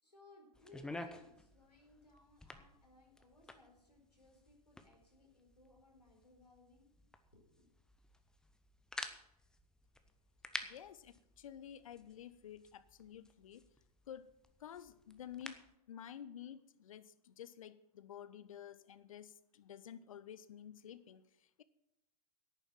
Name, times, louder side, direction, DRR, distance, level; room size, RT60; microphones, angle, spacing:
voice 1, 0.0-6.9 7.3-7.7, left 2 dB, 85° left, 1 dB, 4.3 m, -64 dB
sound 1, 0.5-15.8, left 2 dB, 5° left, 0.7 m, -52 dB
voice 2, 10.6-13.6 14.1-14.3 14.6-15.6 15.9-21.6, left 9 dB, 55° left, 15 dB, 0.8 m, -51 dB
11.0 x 9.0 x 7.3 m, 0.83 s
figure-of-eight pair, 105°, 20 cm